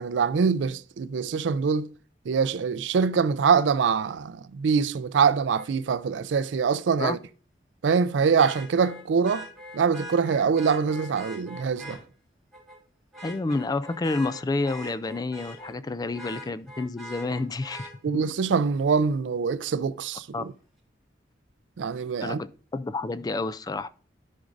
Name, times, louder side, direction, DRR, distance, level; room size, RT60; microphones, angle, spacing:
voice 1, 0.0-1.9 2.3-7.2 7.8-9.5 9.7-12.0 18.0-20.5 21.8-22.4, right 6 dB, 85° right, 0.4 m, -24 dB
Vehicle horn car horn honking, 5.5-5.7 8.4-12.0 12.5-12.8 13.1-15.8 16.1-17.9 19.7-19.8, equal, ahead, 3.9 m, -42 dB
voice 2, 13.2-18.2 20.3-20.4 22.2-23.9, left 3 dB, 20° left, 0.3 m, -29 dB
13.0 x 5.1 x 2.6 m
head